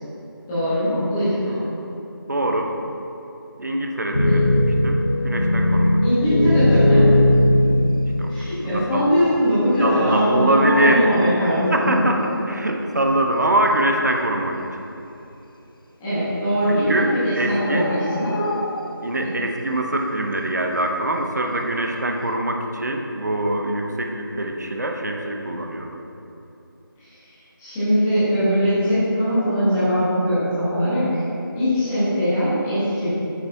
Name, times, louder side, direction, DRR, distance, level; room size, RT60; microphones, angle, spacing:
voice 1, 0.5-1.7 4.2-4.5 6.0-7.1 8.2-12.0 16.0-18.5 27.0-27.1 27.6-31.2 31.5-33.1, equal, 5° left, -15 dB, 1.4 m, -21 dB
voice 2, 2.3-2.8 3.6-4.4 4.8-6.0 8.2-8.3 8.6-9.1 9.8-11.1 11.5-14.6 16.7-17.9 19.0-26.0, right 1 dB, 50° right, 2 dB, 0.9 m, -23 dB
sound 1, 4.1-8.9 9.6-9.7 10.9-11.5 12.1-12.5, left 1 dB, 25° left, 0.5 m, -18 dB
Bird, 7.7-8.3 8.6-8.7 8.9-10.1 10.4-12.2 13.1-13.2 13.8-13.9 14.1-14.2 14.9-15.3 16.3-16.4 16.7-16.8 17.1-19.4 19.7-20.0 20.3-21.7 22.0-22.3, left 1 dB, 70° left, 0.7 m, -34 dB
9.1 x 6.5 x 3.5 m, 2.9 s
figure-of-eight pair, 175°, 12 cm